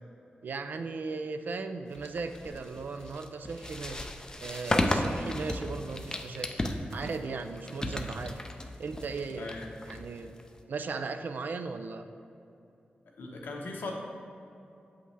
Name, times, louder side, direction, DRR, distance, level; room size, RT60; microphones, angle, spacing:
voice 1, 0.4-6.6 6.9-8.4 8.8-9.5 9.8-10.3 10.7-12.1, right 4 dB, 65° right, 8 dB, 0.4 m, -37 dB
sound 1, 1.9-10.6, left 1 dB, 20° left, 0.4 m, -34 dB
voice 2, 9.4-9.7 13.2-14.0, left 2 dB, 80° left, 0 dB, 0.9 m, -39 dB
7.5 x 5.6 x 3.2 m, 2.7 s
wide cardioid pair, 125°, 3 cm